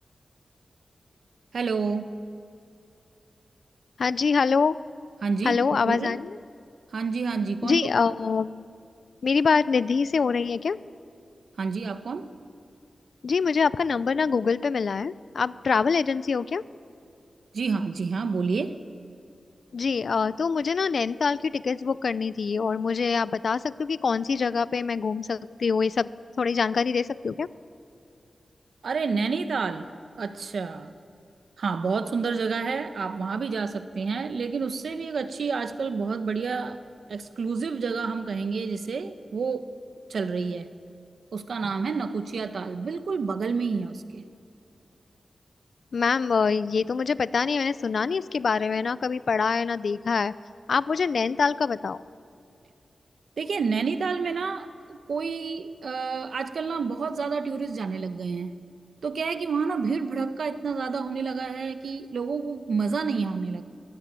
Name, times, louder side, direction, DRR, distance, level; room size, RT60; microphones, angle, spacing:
voice 1, 1.5-2.1 5.2-5.6 5.8-6.2 6.9-7.8 11.6-12.3 17.5-18.7 28.8-29.9 30.2-30.9 31.6-36.8 37.1-39.7 40.1-40.7 41.3-44.2 53.4-58.5 59.0-63.6, right 5 dB, 75° right, 10 dB, 1.1 m, -29 dB
voice 2, 4.0-4.8 5.4-6.4 7.6-8.7 9.2-10.8 13.2-16.6 19.7-26.1 26.4-27.5 45.9-50.3 50.7-52.0, left 5 dB, 65° left, 17 dB, 0.5 m, -25 dB
23.5 x 17.0 x 9.0 m, 2.6 s
wide cardioid pair, 165°, 0 cm